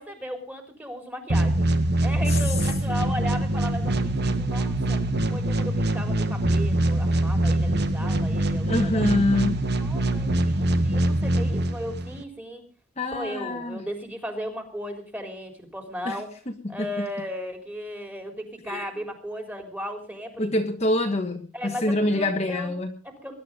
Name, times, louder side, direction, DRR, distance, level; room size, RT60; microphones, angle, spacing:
voice 1, 0.0-1.7 2.0-9.1 9.8-12.6 13.1-16.3 16.7-20.5 21.5-22.7 23.0-23.3, equal, 10° right, 4 dB, 3.8 m, -36 dB
sound 1, 1.3-12.2, right 1 dB, 50° right, 1.6 m, -24 dB
voice 2, 8.7-9.6 13.0-13.8 16.0-16.2 16.6-17.1 18.7-18.8 20.4-22.9, left 1 dB, 30° left, 5 dB, 1.4 m, -25 dB
21.0 x 12.0 x 5.3 m, 0.37 s
head